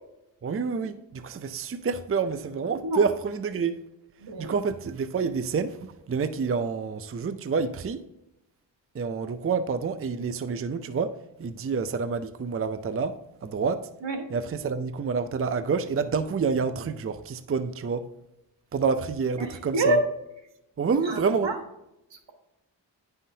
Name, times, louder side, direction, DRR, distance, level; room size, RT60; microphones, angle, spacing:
voice 1, 0.4-3.8 4.4-8.1 8.9-13.9 14.3-18.1 18.7-20.0 20.8-21.5, right 5 dB, 30° right, 0.5 m, -28 dB
voice 2, 4.2-4.5 14.0-14.2 19.4-20.0 21.0-21.5 22.1-22.3, right 2 dB, 80° right, 1.5 m, -27 dB
10.0 x 5.7 x 2.7 m
wide cardioid pair, 70°, 43 cm